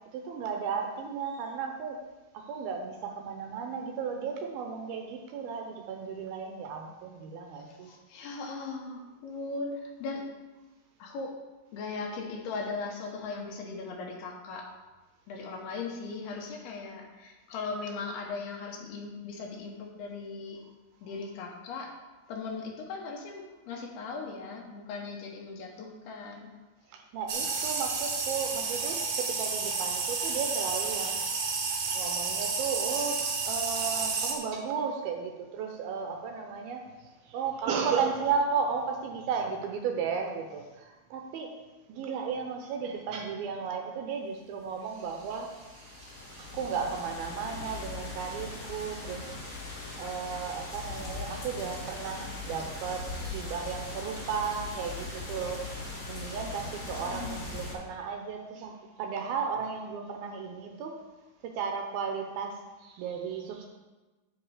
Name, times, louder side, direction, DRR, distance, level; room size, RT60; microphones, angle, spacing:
voice 1, 0.1-2.0 2.3-7.9 26.9-31.3 31.9-41.5 41.9-49.3 50.0-55.8 56.1-61.0 61.4-63.7, right 6 dB, 75° right, 3 dB, 2.4 m, -34 dB
voice 2, 7.6-10.3 11.0-11.4 11.7-14.7 15.3-20.6 21.0-21.9 22.3-26.5 57.1-57.5, left 4 dB, 75° left, 0 dB, 3.0 m, -38 dB
sound 1, 27.3-34.3, right 4 dB, 60° right, 2.0 m, -31 dB
sound 2, 44.8-57.7, left 3 dB, 40° left, 1.1 m, -40 dB
8.0 x 8.0 x 4.8 m, 1.2 s
omnidirectional pair, 4.7 m